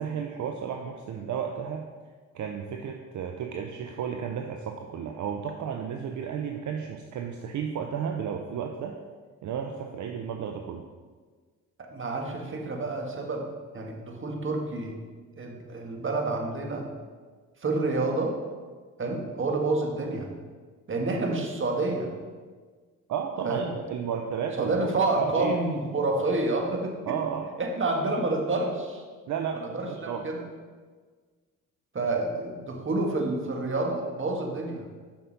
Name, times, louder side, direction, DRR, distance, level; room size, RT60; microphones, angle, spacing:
voice 1, 0.0-1.9 2.3-8.9 9.4-10.8 23.1-25.6 27.1-27.5 29.3-30.2, right 7 dB, 60° right, 3 dB, 0.7 m, -33 dB
voice 2, 11.8-13.5 13.7-15.0 15.4-16.8 17.6-18.4 19.0-20.3 20.9-22.1 23.4-23.7 24.6-27.2 27.6-29.0 29.5-30.4 31.9-34.8, right 2 dB, 35° right, 2 dB, 1.7 m, -28 dB
7.1 x 5.5 x 5.2 m, 1.5 s
supercardioid pair, 60°, 33 cm